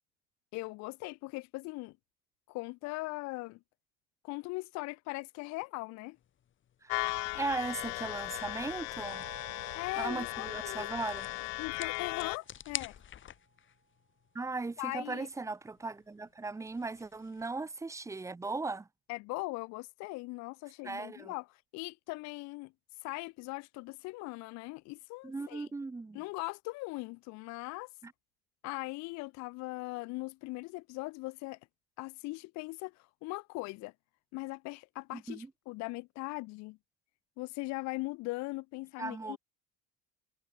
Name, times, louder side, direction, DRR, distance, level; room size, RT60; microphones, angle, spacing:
voice 1, 0.5-1.9 2.5-3.6 4.2-6.2 9.7-10.9 11.6-13.0 14.8-15.3 19.1-21.5 21.7-22.7 23.0-25.7 26.1-27.9 28.6-31.6 32.0-33.9 34.3-36.8 37.4-39.4, left 23 dB, 55° left, 0.7 m, -40 dB
sound 1, 6.2-17.4, left 10 dB, 40° left, 4.3 m, -50 dB
voice 2, 6.8-9.3 10.0-11.4 14.3-18.9 20.8-21.3 25.2-26.2 28.0-28.1 35.1-35.5 39.0-39.4, right 3 dB, 10° right, 0.8 m, -38 dB
sound 2, 6.9-12.4, left 40 dB or more, 80° left, 1.0 m, -37 dB
sound 3, 9.1-13.8, right 7 dB, 30° right, 4.2 m, -56 dB
supercardioid pair, 120°, 32 cm